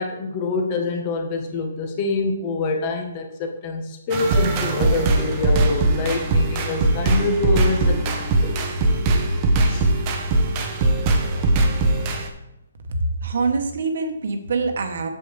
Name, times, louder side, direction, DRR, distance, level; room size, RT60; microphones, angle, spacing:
voice 1, 0.0-8.7 9.7-9.9, left 3 dB, 25° left, 3 dB, 1.3 m, -26 dB
Wild Things, 4.1-12.3, right 2 dB, 25° right, 1.0 m, -20 dB
voice 2, 12.9-15.1, right 3 dB, 55° right, 6 dB, 1.3 m, -24 dB
8.1 x 7.8 x 3.4 m, 0.89 s
hypercardioid pair, 165°, 0 cm